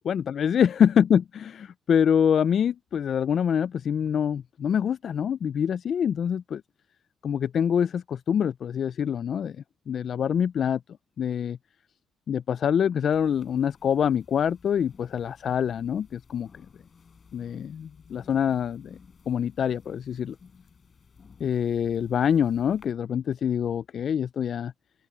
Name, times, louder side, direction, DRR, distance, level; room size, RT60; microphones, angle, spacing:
voice 1, 0.1-1.5 1.9-6.6 7.2-9.6 9.9-10.8 11.2-11.6 12.3-16.5 17.3-19.0 19.3-20.4 21.4-24.7, left 8 dB, 60° left, 0.4 m, -25 dB
sound 1, 13.1-22.9, left 5 dB, 40° left, 4.2 m, -55 dB
cardioid pair, 90°, 0 cm